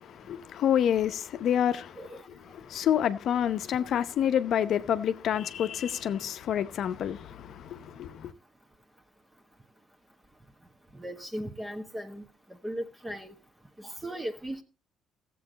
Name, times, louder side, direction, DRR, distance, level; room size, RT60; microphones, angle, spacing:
voice 1, 0.0-2.0 2.7-8.3, left 9 dB, 65° left, 0.7 m, -28 dB
voice 2, 10.9-12.2 12.6-13.3 13.8-14.6, equal, 15° right, 1.2 m, -37 dB
14.0 x 7.7 x 3.9 m
cardioid pair, 80°, 0 cm